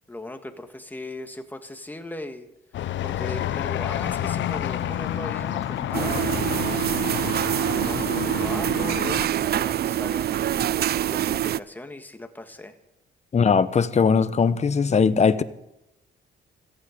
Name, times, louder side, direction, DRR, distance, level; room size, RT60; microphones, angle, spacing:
voice 1, 0.1-2.5 2.7-7.1 7.7-12.8, left 1 dB, 10° left, 6 dB, 1.7 m, -38 dB
sound 1, 2.7-9.3, left 12 dB, 70° left, 0.8 m, -29 dB
sound 2, 4.0-10.7, right 2 dB, 15° right, 5.2 m, -49 dB
sound 3, 5.9-11.6, right 11 dB, 55° right, 0.5 m, -25 dB
voice 2, 13.3-15.4, left 5 dB, 35° left, 14 dB, 0.9 m, -20 dB
17.0 x 14.5 x 5.2 m, 0.88 s
cardioid pair, 90°, 20 cm